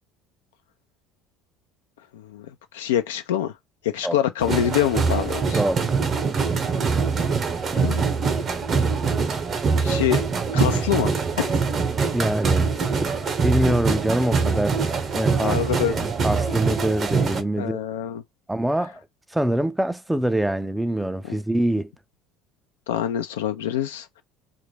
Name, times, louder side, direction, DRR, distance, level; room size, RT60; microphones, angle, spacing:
voice 1, 2.1-2.5 2.7-3.5 3.8-5.6 7.8-8.1 9.8-10.2 10.5-11.6 15.4-16.0 17.6-18.2 21.2-21.4 22.9-24.2, left 10 dB, 90° left, 0.4 m, -25 dB
sound 1, 4.4-17.4, right 5 dB, 40° right, 0.7 m, -23 dB
voice 2, 5.6-6.0 12.1-12.7 13.0-13.1 13.4-15.6 15.9-17.8 18.5-19.0 19.3-21.9, right 1 dB, 5° right, 0.4 m, -24 dB
2.3 x 2.1 x 3.1 m
hypercardioid pair, 85°, 0 cm